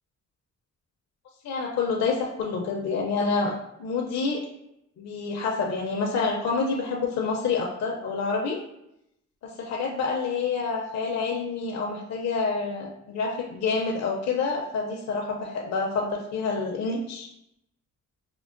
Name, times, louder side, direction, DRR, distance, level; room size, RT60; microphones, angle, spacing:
voice 1, 1.4-3.5 3.8-4.4 5.0-8.6 9.4-17.3, left 4 dB, 60° left, -1 dB, 0.6 m, -28 dB
5.2 x 2.0 x 2.5 m, 0.80 s
cardioid pair, 90°, 30 cm